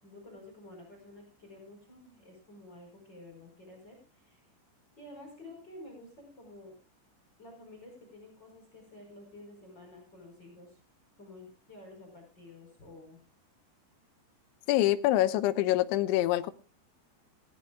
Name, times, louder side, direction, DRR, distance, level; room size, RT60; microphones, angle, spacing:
voice 1, 0.0-4.4 5.0-6.7 7.4-10.8 11.2-13.2, left 2 dB, 25° left, 5.0 m, -51 dB
voice 2, 14.7-16.5, left 15 dB, 85° left, 3.2 m, -25 dB
19.0 x 15.0 x 2.3 m
omnidirectional pair, 5.3 m